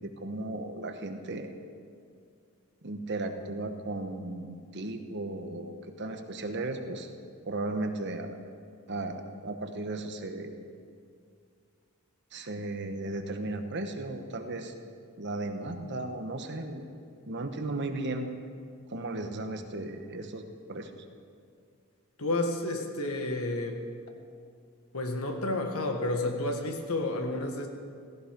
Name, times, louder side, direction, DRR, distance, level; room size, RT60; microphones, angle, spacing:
voice 1, 0.0-1.5 2.8-7.1 7.4-8.4 8.9-10.5 12.3-14.7 15.2-16.8 17.3-18.3 18.9-20.4 20.7-20.9, right 2 dB, 50° right, 6 dB, 1.2 m, -35 dB
voice 2, 22.2-23.8 24.9-27.7, left 2 dB, 75° left, 3 dB, 1.7 m, -30 dB
16.0 x 15.0 x 5.3 m, 2.3 s
head